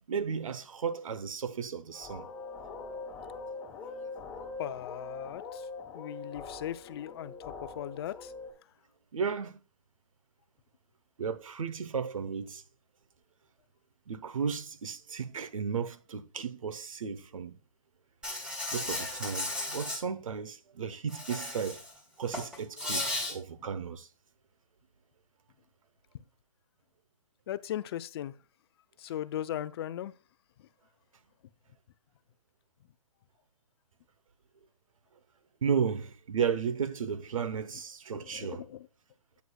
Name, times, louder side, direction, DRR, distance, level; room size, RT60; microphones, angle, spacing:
voice 1, 0.1-2.3 9.1-9.6 11.2-12.6 14.1-17.5 18.7-21.8 22.2-24.1 35.6-38.6, right 6 dB, 85° right, 1.0 m, -34 dB
sound 1, 1.9-8.5, left 4 dB, 15° left, 2.2 m, -43 dB
voice 2, 4.6-5.6 5.9-8.3 27.5-28.3 29.0-30.1 38.1-38.9, left 11 dB, 50° left, 0.6 m, -38 dB
Insect, 18.2-20.0 21.1-21.9 22.2-23.3, left 2 dB, 5° right, 3.3 m, -35 dB
9.3 x 8.1 x 2.3 m
hypercardioid pair, 145°, 17 cm